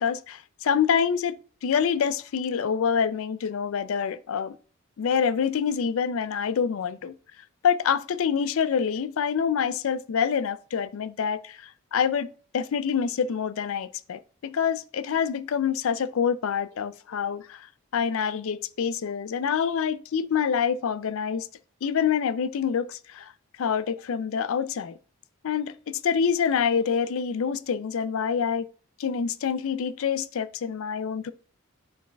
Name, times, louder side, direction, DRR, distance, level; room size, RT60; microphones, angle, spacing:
voice 1, 0.0-1.4 1.6-4.6 5.0-7.1 7.6-12.3 12.5-17.7 17.9-21.5 21.8-23.3 23.6-25.0 25.4-28.7 29.0-31.3, left 7 dB, 65° left, 0.4 m, -26 dB
9.2 x 4.7 x 2.3 m
head